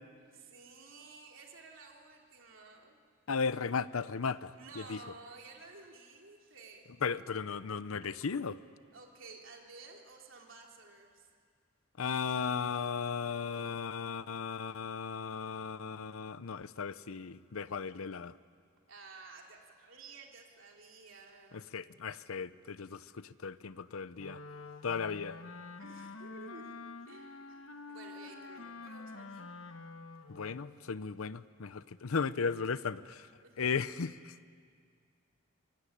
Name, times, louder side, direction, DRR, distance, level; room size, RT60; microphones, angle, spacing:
voice 1, 0.3-3.0 4.5-6.9 8.9-11.3 18.9-21.8 25.8-26.8 27.1-29.5 32.7-32.9 33.4-33.6, right 3 dB, 65° right, 1 dB, 3.6 m, -53 dB
voice 2, 3.3-5.0 7.0-8.6 12.0-18.3 21.7-24.4 24.8-25.4 30.3-33.3 33.6-34.3, left 5 dB, 85° left, 15 dB, 0.7 m, -36 dB
Wind instrument woodwind instrument, 24.2-30.8, left 3 dB, 70° left, 1.3 m, -48 dB
26.5 x 22.5 x 9.9 m, 2.1 s
head